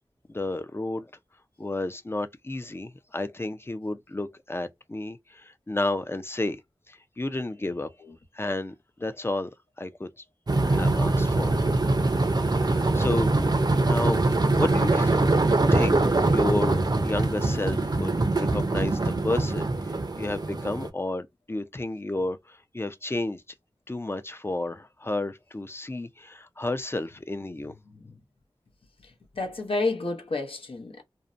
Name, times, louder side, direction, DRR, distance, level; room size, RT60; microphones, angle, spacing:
voice 1, 0.3-1.1 1.6-6.6 6.9-7.9 8.3-9.5 9.8-10.1 10.6-11.5 12.4-13.3 13.8-14.2 14.6-15.2 15.7-23.4 23.9-27.8, left 2 dB, 25° left, 0.4 m, -31 dB
sound 1, 10.5-20.9, right 2 dB, 45° right, 0.5 m, -23 dB
voice 2, 29.4-31.0, left 3 dB, 75° left, 0.7 m, -30 dB
2.6 x 2.1 x 2.4 m
wide cardioid pair, 45°, 9 cm